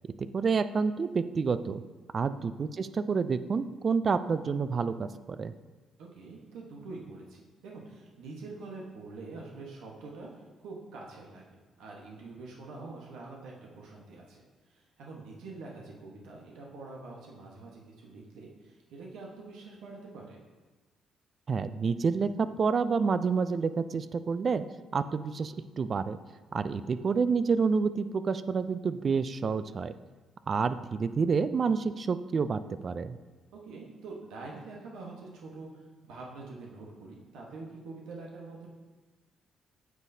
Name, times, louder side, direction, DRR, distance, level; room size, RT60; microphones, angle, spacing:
voice 1, 0.3-1.8 2.1-5.5 21.5-24.6 24.9-26.2 26.5-29.9 30.5-33.2, right 5 dB, 45° right, 13 dB, 0.3 m, -28 dB
voice 2, 6.0-11.4 11.8-14.4 14.7-20.4 26.7-26.9 33.6-38.7, right 3 dB, 90° right, -2 dB, 1.1 m, -45 dB
9.3 x 6.3 x 2.7 m, 1.3 s
cardioid pair, 90°, 0 cm